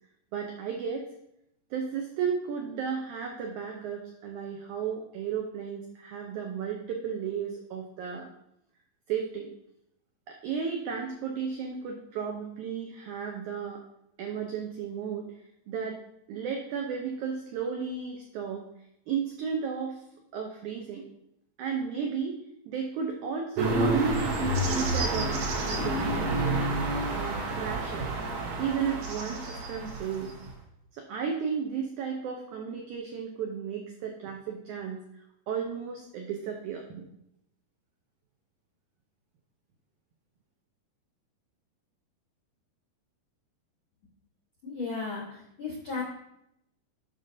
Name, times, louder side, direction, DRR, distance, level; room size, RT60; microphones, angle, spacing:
voice 1, 0.3-1.1 1.7-8.3 9.1-9.5 10.3-13.8 14.2-15.2 15.7-16.0 16.3-18.6 19.1-20.0 20.3-21.0 21.6-22.4 22.6-26.7 27.1-28.1 28.6-30.3 30.9-35.0 35.5-37.0, right 6 dB, 85° right, 2 dB, 1.7 m, -33 dB
sound 1, 23.6-30.5, right 2 dB, 65° right, 1.7 m, -29 dB
voice 2, 44.6-46.0, left 4 dB, 75° left, -3 dB, 1.2 m, -35 dB
11.5 x 5.4 x 2.6 m, 0.80 s
omnidirectional pair, 4.3 m